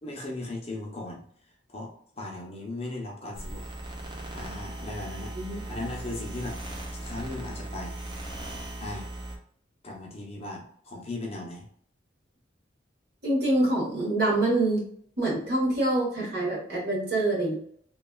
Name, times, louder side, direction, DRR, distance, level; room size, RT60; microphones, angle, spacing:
voice 1, 0.0-1.2 1.7-3.6 4.3-6.6 6.9-8.0 8.8-9.1 9.8-11.6, left 2 dB, 30° left, -1 dB, 0.6 m, -37 dB
sound 1, 3.3-9.4, right 1 dB, 25° right, 0.5 m, -38 dB
voice 2, 13.2-14.9 15.2-17.5, right 2 dB, 55° right, -4 dB, 1.3 m, -25 dB
3.1 x 2.3 x 2.2 m, 0.62 s
head